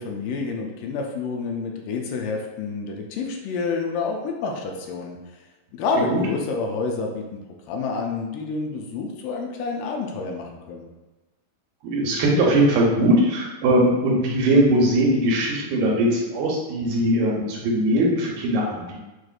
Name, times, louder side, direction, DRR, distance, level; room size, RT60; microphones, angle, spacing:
voice 1, 0.0-5.2 5.7-7.2 7.7-10.9, left 4 dB, 80° left, 1 dB, 2.1 m, -28 dB
voice 2, 11.8-19.0, right 1 dB, 85° right, -2 dB, 2.4 m, -20 dB
6.1 x 2.5 x 2.4 m, 1.1 s
omnidirectional pair, 4.0 m